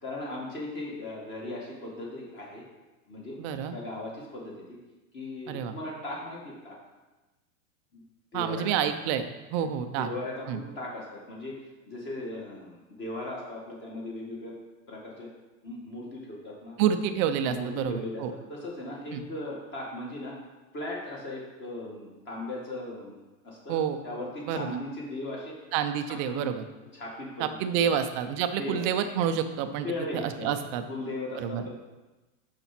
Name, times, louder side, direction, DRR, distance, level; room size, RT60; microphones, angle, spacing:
voice 1, 0.0-2.6 3.1-3.4 3.7-4.8 5.1-6.8 7.9-8.0 8.3-8.6 10.0-11.6 11.9-14.5 14.9-15.3 15.6-16.8 17.5-20.4 20.7-23.2 23.4-23.8 24.0-25.6 26.1-26.5 26.9-27.4 27.8-27.9 28.6-28.8 29.8-30.5 30.9-31.7, left 1 dB, 25° left, -3 dB, 1.7 m, -37 dB
voice 2, 3.4-3.7 5.5-5.7 8.3-10.1 10.5-10.6 16.8-18.3 19.1-19.2 23.7-24.0 24.5-24.7 25.7-26.6 27.4-29.9 30.1-30.8 31.4-31.7, right 8 dB, 25° right, 8 dB, 0.3 m, -28 dB
6.9 x 5.9 x 5.8 m, 1.1 s
supercardioid pair, 150°, 42 cm